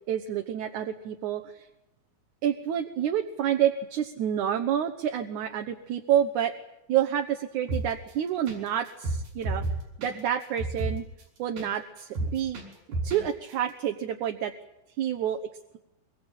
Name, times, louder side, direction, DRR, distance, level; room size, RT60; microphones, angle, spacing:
voice 1, 0.1-1.7 2.4-6.5 6.9-9.6 10.0-11.1 11.4-12.6 12.9-14.5 15.0-15.5, right 10 dB, 65° right, 5 dB, 2.3 m, -28 dB
sound 1, 7.7-8.1 8.5-8.6 8.9-11.7 12.0-13.2 13.5-13.6, right 2 dB, 80° right, 7.4 m, -31 dB
24.0 x 23.0 x 9.0 m, 0.92 s
omnidirectional pair, 4.1 m